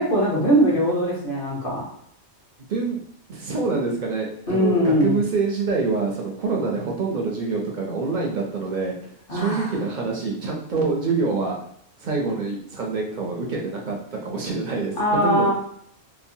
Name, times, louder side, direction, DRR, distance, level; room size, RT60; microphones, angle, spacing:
voice 1, 0.0-1.8 4.5-5.2 9.3-9.7 15.0-15.5, equal, 55° left, -4 dB, 1.1 m, -21 dB
voice 2, 2.7-3.0 3.3-11.6 12.0-15.5, right 4 dB, 60° right, -1 dB, 0.5 m, -26 dB
2.9 x 2.0 x 2.6 m, 0.70 s
omnidirectional pair, 1.2 m